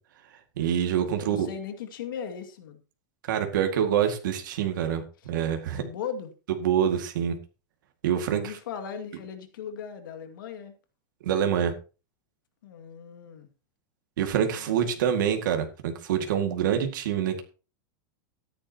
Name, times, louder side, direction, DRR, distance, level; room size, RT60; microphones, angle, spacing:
voice 1, 0.6-1.5 3.3-5.0 5.3-5.8 6.6-7.3 8.0-8.4 11.2-11.7 14.2-17.4, right 9 dB, 70° right, 5 dB, 2.1 m, -26 dB
voice 2, 1.2-2.8 5.7-6.3 8.2-10.7 12.6-13.5 14.6-15.0, left 7 dB, 85° left, 7 dB, 2.3 m, -38 dB
14.0 x 10.0 x 2.9 m, 0.33 s
supercardioid pair, 175°, 11 cm